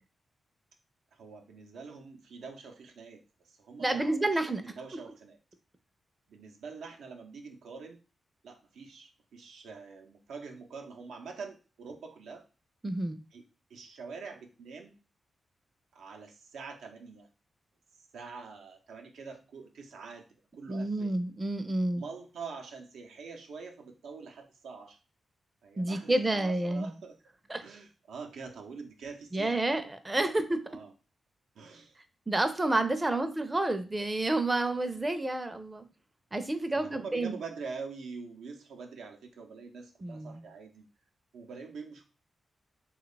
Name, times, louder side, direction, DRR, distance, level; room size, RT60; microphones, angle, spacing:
voice 1, 1.1-5.4 6.3-8.0 8.4-12.4 13.3-13.4 13.7-14.9 15.9-17.3 18.0-20.2 20.5-21.1 22.0-25.0 25.6-27.2 27.6-29.6 30.2-30.4 30.7-30.9 31.5-32.0 33.1-33.3 36.7-40.9 41.3-42.0, right 5 dB, 90° right, 3 dB, 0.5 m, -45 dB
voice 2, 3.8-4.6 12.8-13.2 20.7-22.0 25.8-26.9 27.5-27.6 29.3-30.6 32.3-35.9 36.3-37.4 40.0-40.4, right 2 dB, 20° right, 8 dB, 0.4 m, -29 dB
3.0 x 2.3 x 3.9 m, 0.33 s
cardioid pair, 65°, 0 cm